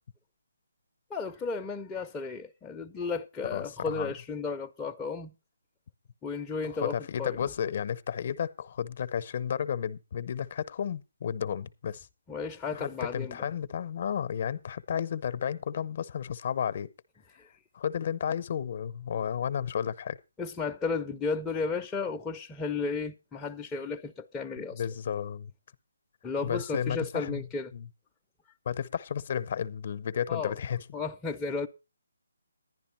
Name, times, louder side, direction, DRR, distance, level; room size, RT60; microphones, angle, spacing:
voice 1, 1.1-5.3 6.2-6.9 7.2-7.5 12.3-13.4 17.4-17.5 20.4-24.8 26.2-27.7 30.3-30.5 30.9-31.7, left 4 dB, 10° left, 0.5 m, -34 dB
voice 2, 3.5-4.1 6.8-12.1 12.7-16.9 17.7-20.2 24.7-25.5 26.4-27.4 27.7-27.9 28.7-30.8, left 8 dB, 45° left, 0.7 m, -32 dB
11.0 x 10.5 x 4.4 m
hypercardioid pair, 155°, 0 cm